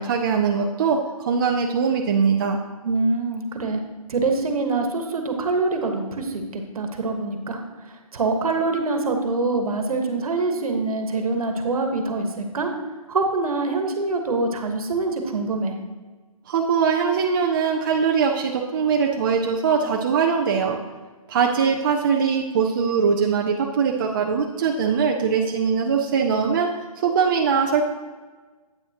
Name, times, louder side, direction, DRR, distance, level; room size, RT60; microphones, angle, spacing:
voice 1, 0.0-2.6 16.5-20.8 21.3-26.7 27.0-27.8, right 6 dB, 35° right, 1 dB, 0.5 m, -21 dB
voice 2, 2.8-3.8 4.1-12.7 13.1-15.7, right 3 dB, 70° right, 5 dB, 1.3 m, -25 dB
8.7 x 8.7 x 2.9 m, 1.3 s
hypercardioid pair, 155°, 19 cm